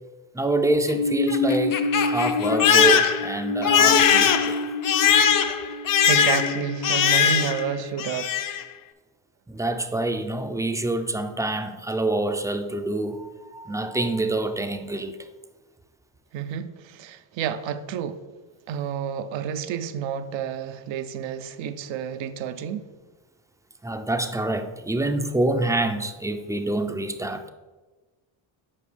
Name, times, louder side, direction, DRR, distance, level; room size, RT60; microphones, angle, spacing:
voice 1, 0.3-4.6 9.5-15.2 23.8-27.4, right 2 dB, 5° right, 0.4 m, -26 dB
Crying sobbing, 0.7-7.7 8.0-8.6, left 7 dB, 45° left, 0.6 m, -21 dB
voice 2, 6.0-8.5 16.3-18.2 18.7-22.8, right 8 dB, 70° right, 0.6 m, -30 dB
7.2 x 4.9 x 3.3 m
supercardioid pair, 75°, 47 cm